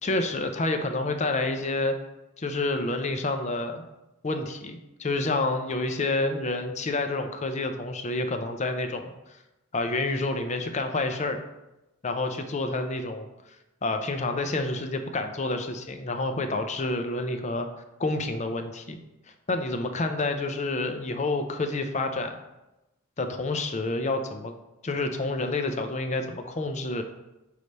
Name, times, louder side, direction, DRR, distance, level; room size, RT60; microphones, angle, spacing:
voice 1, 0.0-2.0 2.4-3.8 4.2-9.1 9.7-11.4 12.0-13.3 13.8-17.7 18.0-19.0 19.5-22.4 23.2-24.5 24.8-27.0, left 2 dB, 30° left, 6 dB, 0.5 m, -28 dB
5.6 x 3.3 x 5.3 m, 0.98 s
head